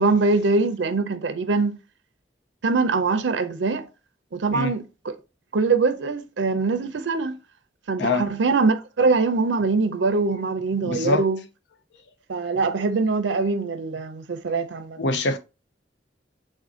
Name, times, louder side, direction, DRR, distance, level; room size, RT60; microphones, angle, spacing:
voice 1, 0.0-1.8 2.6-3.9 4.3-5.1 5.5-7.4 7.9-11.4 12.3-15.0, right 3 dB, 80° right, 0.5 m, -23 dB
voice 2, 10.8-11.2 12.4-12.5 15.0-15.4, left 3 dB, 70° left, 0.6 m, -24 dB
3.7 x 2.6 x 3.7 m
head